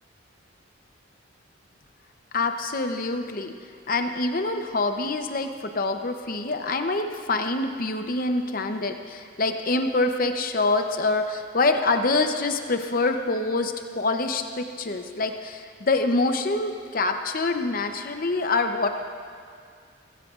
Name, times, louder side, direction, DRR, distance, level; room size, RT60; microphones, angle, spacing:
voice 1, 2.3-3.5 3.9-18.9, left 3 dB, 45° left, 6 dB, 0.7 m, -25 dB
17.5 x 16.5 x 2.5 m, 2.2 s
head